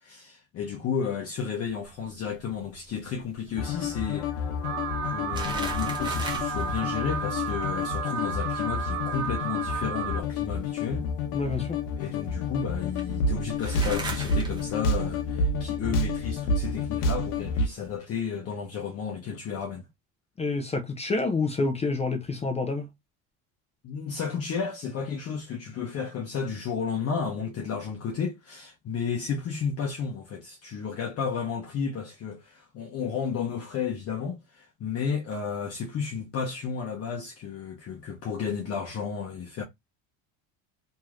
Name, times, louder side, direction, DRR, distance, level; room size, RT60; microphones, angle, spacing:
voice 1, 0.0-4.3 5.0-11.1 12.0-19.9 23.8-39.6, left 6 dB, 40° left, 0.9 m, -32 dB
sound 1, 1.6-18.0, right 3 dB, 10° right, 0.9 m, -43 dB
sound 2, 3.6-17.7, left 3 dB, 90° left, 0.9 m, -29 dB
Alarm, 4.6-10.2, right 7 dB, 50° right, 0.5 m, -33 dB
voice 2, 11.3-11.8 20.4-22.9, left 3 dB, 15° left, 0.4 m, -28 dB
3.1 x 2.8 x 2.3 m
supercardioid pair, 125°, 38 cm